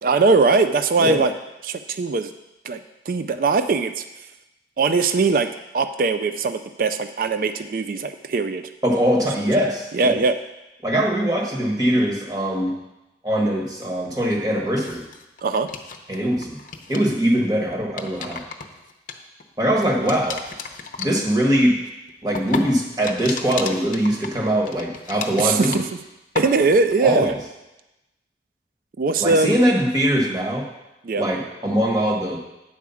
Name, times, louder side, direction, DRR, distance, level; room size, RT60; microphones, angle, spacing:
voice 1, 0.0-1.3 1.6-2.3 2.6-4.0 4.8-8.6 9.9-10.4 15.4-15.7 25.4-25.8 26.3-27.4 29.0-29.6 31.0-31.3, right 4 dB, 50° right, 10 dB, 0.4 m, -20 dB
voice 2, 8.8-10.2 10.8-12.7 13.2-15.0 16.1-16.6 16.9-18.4 19.6-20.4 21.0-21.8 22.2-25.8 27.0-27.3 29.2-30.7 31.2-32.4, equal, 20° right, -1 dB, 1.3 m, -21 dB
sound 1, 14.7-16.2 16.4-17.1 17.7-19.7 20.1-26.1 26.4-26.9, left 5 dB, 50° left, 0.7 m, -34 dB
9.2 x 4.8 x 6.9 m, 0.98 s
head